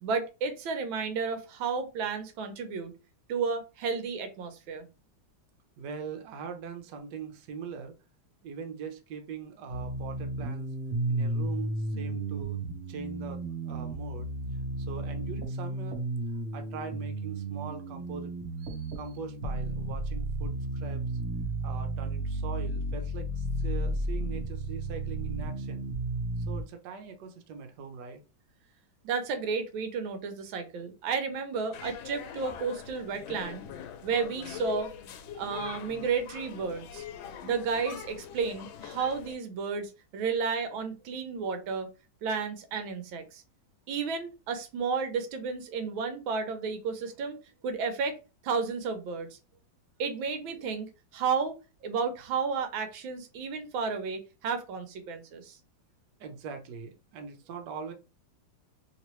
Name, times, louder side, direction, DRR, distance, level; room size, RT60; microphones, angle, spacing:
voice 1, 0.0-2.9 3.3-4.9 29.0-33.6 34.0-34.9 35.3-37.0 37.4-41.9 42.2-43.4 43.9-47.4 47.6-48.2 48.4-49.4 50.0-50.9 51.1-51.5 51.8-55.6, right 5 dB, 90° right, 1.5 m, -32 dB
voice 2, 5.8-8.0 8.4-10.7 11.1-12.6 12.9-14.3 14.8-16.0 16.5-18.3 19.0-21.0 21.6-25.8 26.4-28.2 56.2-57.9, right 6 dB, 70° right, 1.2 m, -41 dB
sound 1, 9.7-26.6, right 1 dB, 50° right, 0.8 m, -33 dB
sound 2, 31.7-39.4, left 8 dB, 90° left, 1.4 m, -42 dB
3.2 x 2.9 x 3.0 m
omnidirectional pair, 2.1 m